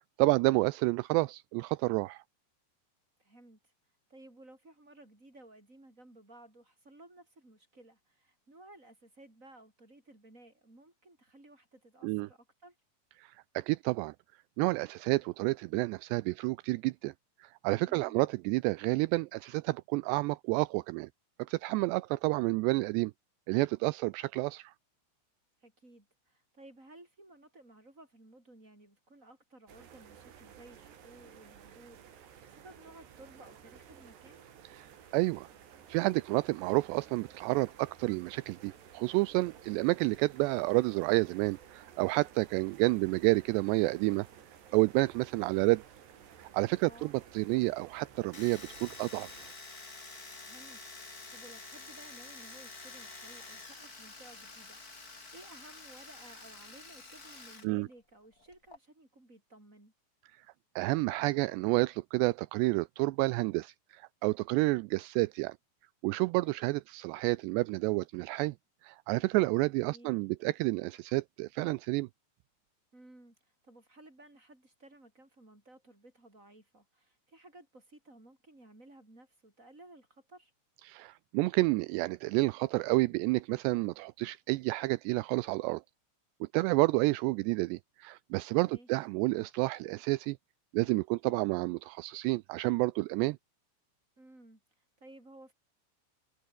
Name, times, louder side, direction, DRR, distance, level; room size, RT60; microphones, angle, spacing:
voice 1, 0.2-2.2 12.0-12.3 13.2-14.1 14.6-17.1 17.4-21.1 21.5-23.1 23.5-24.7 34.7-35.5 35.9-44.3 44.7-45.8 46.4-49.3 57.6-57.9 60.8-65.6 66.0-68.5 68.8-72.1 80.9-85.8 86.4-90.4 90.7-93.4, right 23 dB, 85° right, 2.5 m, -30 dB
voice 2, 3.2-3.7 4.1-12.8 17.8-18.2 25.6-34.4 46.8-47.1 50.4-59.9 69.8-70.2 72.9-80.5 88.6-88.9 94.2-95.5, right 1 dB, 15° right, 8.1 m, -56 dB
sound 1, 29.7-49.5, right 8 dB, 65° right, 5.2 m, -55 dB
Domestic sounds home sounds, 48.3-57.7 57.9-58.8, left 3 dB, 20° left, 3.8 m, -48 dB
omnidirectional pair, 5.4 m